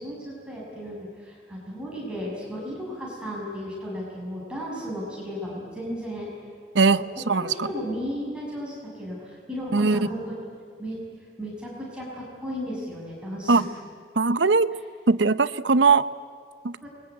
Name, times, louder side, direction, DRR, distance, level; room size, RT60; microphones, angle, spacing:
voice 1, 0.0-6.3 7.0-10.4 10.8-11.0 11.4-13.6 14.7-14.8 16.8-16.9, equal, 5° right, -5 dB, 6.7 m, -34 dB
voice 2, 6.7-7.7 9.7-10.0 13.5-13.6 14.2-14.7 15.1-16.1 16.6-16.8, right 4 dB, 80° right, 15 dB, 0.8 m, -20 dB
27.5 x 22.5 x 9.4 m, 2.2 s
head